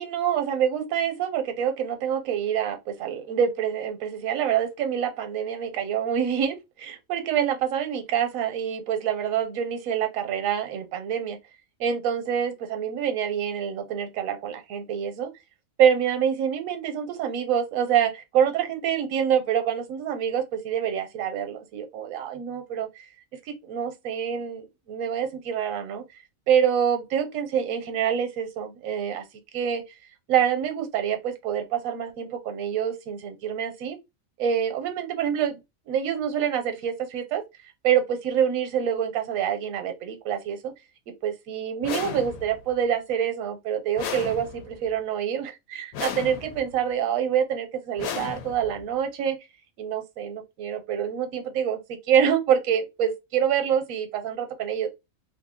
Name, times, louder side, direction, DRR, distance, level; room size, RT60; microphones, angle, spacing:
voice 1, 0.0-11.4 11.8-15.3 15.8-23.1 23.5-26.0 26.5-29.2 29.5-29.8 30.3-34.0 34.4-35.6 35.9-37.4 37.8-40.7 41.2-49.4 49.8-54.9, right 8 dB, 75° right, 1.1 m, -26 dB
sound 1, 41.8-42.7 44.0-44.9 45.9-46.8 48.0-48.9, left 7 dB, 80° left, 1.1 m, -35 dB
2.7 x 2.6 x 3.6 m
omnidirectional pair, 1.5 m